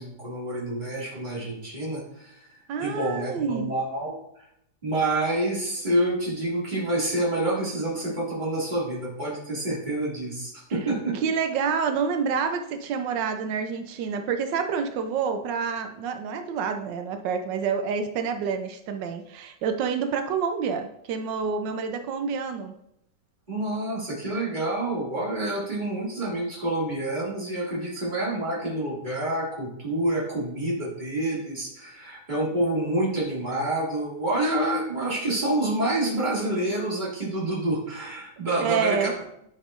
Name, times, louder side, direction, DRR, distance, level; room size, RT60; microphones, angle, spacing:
voice 1, 0.0-2.4 2.8-4.1 4.8-11.2 23.5-39.1, right 1 dB, 25° right, -6 dB, 2.4 m, -28 dB
voice 2, 2.7-3.7 11.1-22.7 38.6-39.1, right 6 dB, 90° right, 7 dB, 1.3 m, -28 dB
11.0 x 5.4 x 2.5 m, 0.76 s
omnidirectional pair, 1.9 m